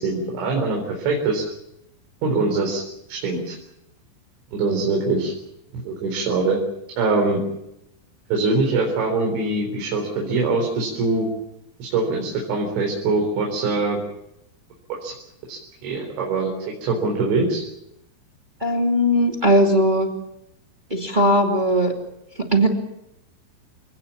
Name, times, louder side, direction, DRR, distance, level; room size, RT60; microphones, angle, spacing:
voice 1, 0.0-1.4 2.2-2.8 3.1-3.6 4.5-5.3 5.7-6.6 7.0-7.4 8.3-11.3 11.8-14.0 15.0-15.1 15.5-17.6, right 3 dB, 75° right, 1 dB, 6.4 m, -23 dB
voice 2, 18.6-20.1 20.9-22.0 22.5-22.7, equal, 15° right, 2 dB, 1.6 m, -18 dB
29.5 x 18.5 x 7.3 m, 0.84 s
omnidirectional pair, 5.4 m